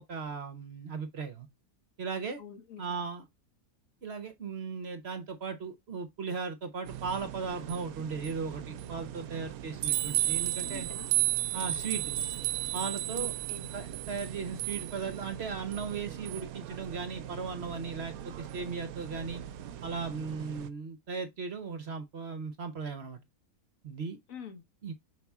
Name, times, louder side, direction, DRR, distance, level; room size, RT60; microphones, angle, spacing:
voice 1, 0.1-1.5 2.0-2.4 2.8-3.3 4.0-10.9 11.5-12.1 12.7-13.3 13.7-19.4 19.8-23.2 23.8-24.2 24.8-24.9, right 5 dB, 50° right, 1.0 m, -37 dB
voice 2, 2.4-3.2 10.5-11.1 13.2-13.7 24.3-24.6, left 6 dB, 65° left, 1.5 m, -47 dB
sound 1, 6.9-20.7, right 14 dB, 75° right, 1.0 m, -35 dB
5.9 x 4.8 x 3.4 m
omnidirectional pair, 1.5 m